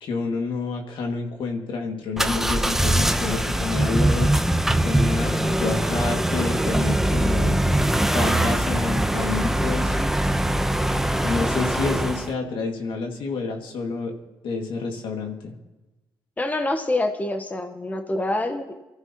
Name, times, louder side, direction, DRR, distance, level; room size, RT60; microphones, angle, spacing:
voice 1, 0.0-4.3 4.8-7.6 8.1-9.9 11.2-14.1 14.4-15.5, left 4 dB, 75° left, 2 dB, 2.3 m, -28 dB
sound 1, 2.2-12.3, right 1 dB, 5° right, 0.9 m, -22 dB
voice 2, 5.1-5.8 16.4-18.8, left 2 dB, 20° left, 6 dB, 1.2 m, -27 dB
24.5 x 14.5 x 3.0 m, 1.1 s
cardioid pair, 80°, 9 cm